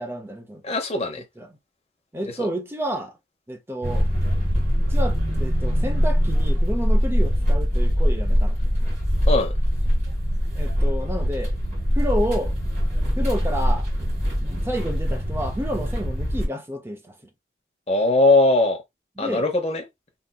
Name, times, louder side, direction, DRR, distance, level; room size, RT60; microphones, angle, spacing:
voice 1, 0.0-0.6 1.4-1.6 2.1-3.1 3.5-4.1 4.8-8.6 10.5-11.5 12.0-12.6 13.2-13.9 14.4-17.1 19.2-19.5, equal, 15° right, 0.5 m, -30 dB
voice 2, 0.6-1.2 2.4-2.5 9.3-9.5 17.9-18.8 19.2-19.8, left 2 dB, 35° left, 0.8 m, -20 dB
sound 1, 3.8-16.5, equal, 40° right, 2.1 m, -22 dB
3.1 x 2.7 x 2.2 m
head